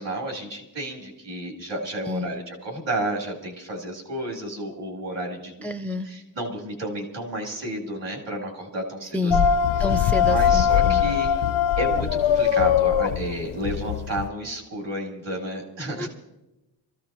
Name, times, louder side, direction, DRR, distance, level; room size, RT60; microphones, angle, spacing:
voice 1, 0.0-5.5 5.8-9.4 10.2-11.3 11.8-16.1, right 1 dB, 65° right, -1 dB, 3.6 m, -31 dB
voice 2, 5.6-6.1 9.1-9.5 9.8-11.0 16.0-16.1, left 3 dB, 5° left, 10 dB, 0.4 m, -28 dB
sound 1, 9.3-14.3, left 8 dB, 80° left, 0.6 m, -21 dB
25.0 x 15.0 x 3.0 m, 0.96 s
wide cardioid pair, 140°, 46 cm